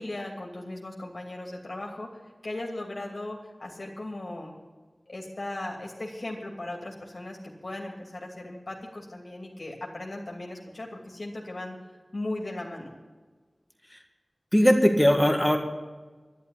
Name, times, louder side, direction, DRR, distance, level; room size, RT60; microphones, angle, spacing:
voice 1, 0.0-2.1 2.4-4.6 5.1-11.8 12.1-12.9, left 1 dB, 65° left, -1 dB, 2.6 m, -37 dB
voice 2, 14.5-15.6, equal, 10° left, 4 dB, 1.8 m, -19 dB
11.5 x 11.0 x 9.9 m, 1.4 s
wide cardioid pair, 65°, 0 cm